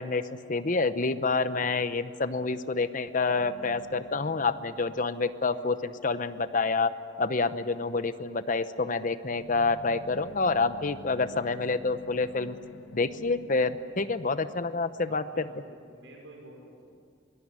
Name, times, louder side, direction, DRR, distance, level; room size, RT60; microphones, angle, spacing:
voice 1, 0.0-6.9 7.2-12.5 12.9-15.4, left 3 dB, 45° left, 12 dB, 0.9 m, -28 dB
sound 1, 3.4-5.6 9.2-13.8, left 1 dB, 80° left, 1.6 m, -49 dB
voice 2, 15.0-16.9, right 1 dB, 80° right, 0 dB, 5.7 m, -50 dB
23.5 x 18.0 x 9.8 m, 2.3 s
head